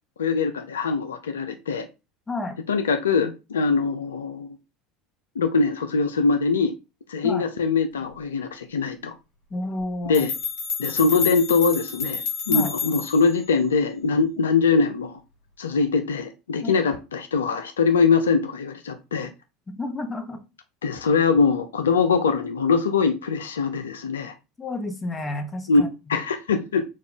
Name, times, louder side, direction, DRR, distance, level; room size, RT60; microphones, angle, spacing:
voice 1, 0.2-1.9 2.7-4.6 5.4-6.7 7.1-9.1 10.1-10.3 10.8-15.2 15.6-19.3 20.8-24.3 25.7-25.8 26.1-26.9, left 4 dB, 85° left, 0.3 m, -22 dB
voice 2, 2.3-2.6 7.2-7.5 9.5-10.3 12.5-12.7 16.6-16.8 19.8-20.4 24.6-25.9, left 2 dB, 20° left, 0.9 m, -31 dB
sound 1, 9.8-9.9 10.1-13.3, left 5 dB, 60° left, 1.2 m, -29 dB
3.6 x 2.3 x 3.6 m
hypercardioid pair, 75°, 0 cm